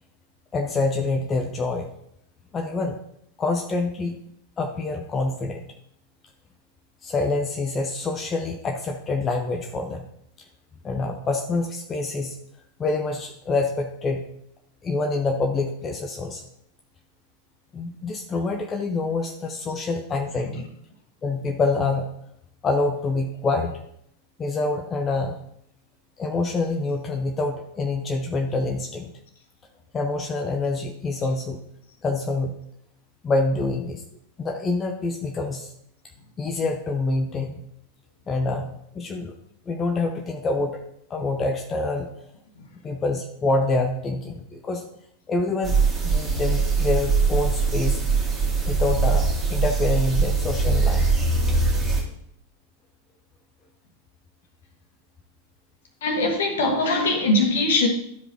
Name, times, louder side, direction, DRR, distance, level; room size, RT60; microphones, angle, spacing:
voice 1, 0.5-1.9 2.5-3.0 3.4-4.2 4.6-5.7 7.0-10.1 10.8-12.4 12.8-14.3 14.8-16.4 17.7-20.6 21.2-22.0 22.6-23.8 24.4-25.4 26.2-29.1 29.9-31.6 32.0-32.6 33.2-34.0 34.4-35.7 36.4-37.6 38.3-38.7 38.9-39.3 39.7-40.8 41.1-42.1 42.8-44.8 45.3-45.8 46.0-48.0 48.7-51.0, left 3 dB, 20° left, 0.8 m, -26 dB
sound 1, 45.6-52.0, right 4 dB, 20° right, 2.1 m, -22 dB
voice 2, 56.0-57.9, left 2 dB, 60° left, 1.6 m, -22 dB
12.5 x 5.0 x 3.0 m
figure-of-eight pair, 90°, 0 cm